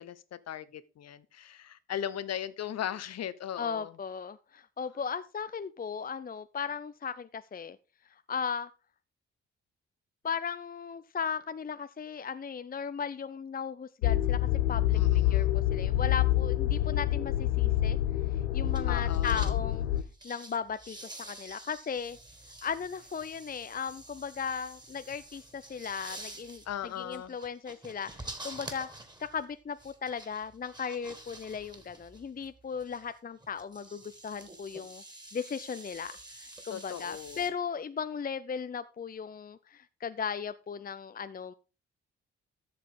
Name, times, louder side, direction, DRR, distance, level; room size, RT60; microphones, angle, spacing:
voice 1, 0.0-3.9 14.9-15.6 18.9-19.4 26.7-27.4 36.7-37.5, left 10 dB, 55° left, 1.0 m, -38 dB
voice 2, 3.6-7.8 8.1-8.7 10.2-14.4 14.7-18.0 18.5-19.9 20.2-22.2 22.6-26.6 27.0-28.9 29.2-35.0 35.3-41.5, left 6 dB, 30° left, 0.6 m, -37 dB
sound 1, 14.0-20.0, left 13 dB, 90° left, 0.5 m, -27 dB
sound 2, 18.7-19.6 20.0-37.5, right 1 dB, 15° right, 2.7 m, -48 dB
13.5 x 6.7 x 3.9 m
hypercardioid pair, 40°, 31 cm